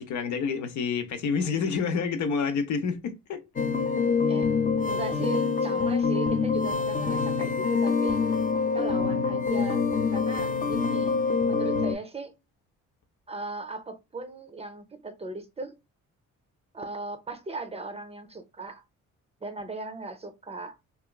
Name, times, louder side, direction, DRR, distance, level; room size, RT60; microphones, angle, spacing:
voice 1, 0.0-3.4, left 5 dB, 70° left, 0.7 m, -28 dB
sound 1, 3.6-12.0, left 5 dB, 30° left, 0.5 m, -25 dB
voice 2, 4.9-8.2 8.7-9.8 10.1-12.3 13.3-15.7 16.7-18.8 19.4-20.8, right 3 dB, 20° right, 0.5 m, -38 dB
2.9 x 2.3 x 2.2 m
cardioid pair, 90°, 30 cm